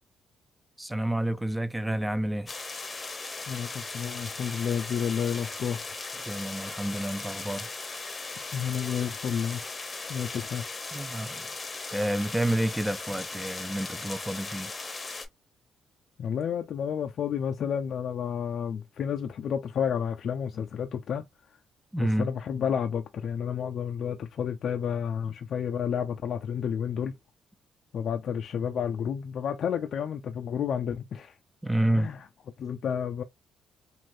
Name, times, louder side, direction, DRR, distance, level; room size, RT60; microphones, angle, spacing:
voice 1, 0.8-2.5 6.1-7.7 10.9-11.4 11.9-14.7 21.9-22.3 31.6-32.1, right 1 dB, 10° right, 0.4 m, -29 dB
sound 1, 2.5-15.3, left 3 dB, 30° left, 0.7 m, -38 dB
voice 2, 3.4-5.9 8.5-9.6 10.1-10.7 16.2-21.2 22.0-27.1 27.9-31.3 31.9-32.2 32.6-33.2, left 8 dB, 65° left, 0.3 m, -31 dB
3.2 x 2.5 x 2.6 m
cardioid pair, 90°, 0 cm